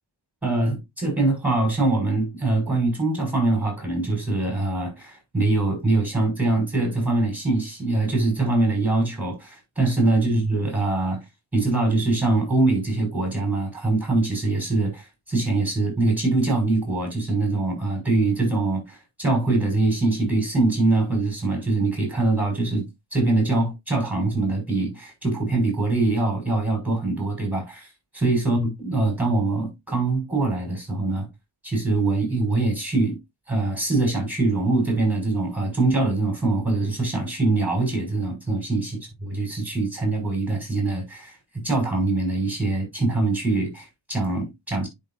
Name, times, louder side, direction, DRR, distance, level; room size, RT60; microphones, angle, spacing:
voice 1, 0.4-11.2 11.5-22.9 23.1-31.3 31.6-33.2 33.5-41.4 41.6-44.9, right 2 dB, 5° right, 5.8 m, -23 dB
10.5 x 5.6 x 2.5 m
wide cardioid pair, 80°, 49 cm